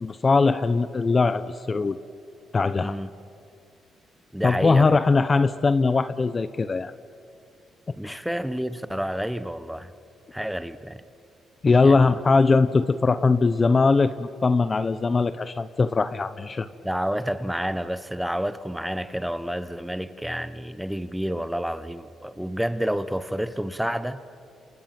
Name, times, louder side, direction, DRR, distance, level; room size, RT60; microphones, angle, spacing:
voice 1, 0.0-2.0 2.5-2.9 4.4-6.9 8.0-8.2 11.6-16.7, left 4 dB, 30° left, 0.7 m, -21 dB
voice 2, 2.8-3.1 4.3-5.0 8.0-9.9 10.3-11.0 11.8-12.2 16.8-24.2, equal, 5° right, 1.1 m, -29 dB
29.0 x 27.5 x 6.0 m
cardioid pair, 90°, 0 cm